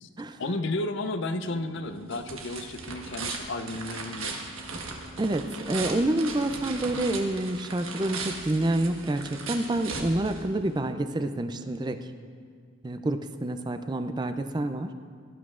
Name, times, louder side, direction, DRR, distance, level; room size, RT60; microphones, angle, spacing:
voice 1, 0.4-4.4, left 2 dB, 60° left, 9 dB, 0.6 m, -32 dB
sound 1, 1.4-10.9, right 4 dB, 75° right, 1.4 m, -38 dB
voice 2, 5.2-12.1 12.8-14.9, right 1 dB, 20° right, 8 dB, 0.4 m, -28 dB
17.5 x 12.0 x 2.5 m, 2.1 s
head